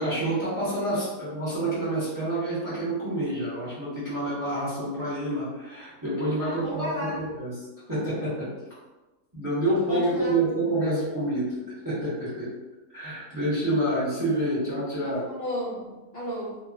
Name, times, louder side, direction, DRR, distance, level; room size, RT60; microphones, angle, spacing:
voice 1, 0.0-8.5 9.3-11.6 11.8-12.5 12.9-15.2, right 1 dB, 15° right, -10 dB, 0.7 m, -28 dB
voice 2, 6.4-7.2 9.9-10.4 15.0-16.6, equal, 55° left, -10 dB, 0.7 m, -33 dB
2.9 x 2.3 x 2.4 m, 1.1 s
omnidirectional pair, 1.7 m